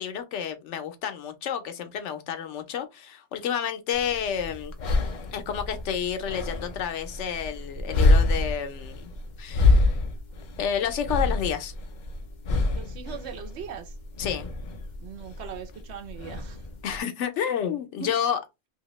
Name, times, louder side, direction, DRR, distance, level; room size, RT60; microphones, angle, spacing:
voice 1, 0.0-4.7 5.3-9.1 9.4-10.0 10.6-11.7 14.2-14.5 16.8-18.4, left 8 dB, 90° left, 1.0 m, -30 dB
sound 1, 3.9-17.0, left 2 dB, 50° left, 0.6 m, -27 dB
voice 2, 12.7-13.9 15.0-16.6 18.0-18.1, right 7 dB, 70° right, 0.9 m, -39 dB
2.8 x 2.6 x 3.0 m
omnidirectional pair, 1.2 m